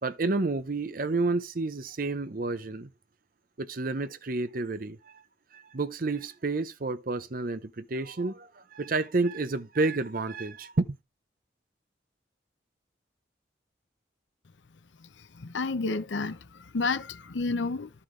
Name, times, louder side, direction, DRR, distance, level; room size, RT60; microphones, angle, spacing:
voice 1, 0.0-2.9 3.6-5.0 5.5-11.0, right 3 dB, 50° right, 0.7 m, -30 dB
voice 2, 15.0-17.9, left 3 dB, 85° left, 0.7 m, -31 dB
12.0 x 5.6 x 3.2 m
head